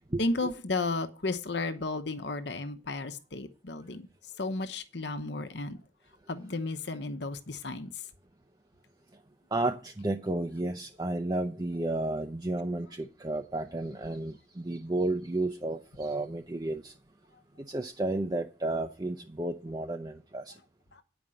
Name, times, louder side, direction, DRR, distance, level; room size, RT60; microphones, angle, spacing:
voice 1, 0.2-4.1 4.4-5.8 6.3-8.0 20.9-21.0, left 3 dB, 65° left, 1.0 m, -33 dB
voice 2, 9.5-16.9 17.6-20.6, right 2 dB, 20° right, 0.6 m, -32 dB
9.8 x 5.2 x 7.7 m
head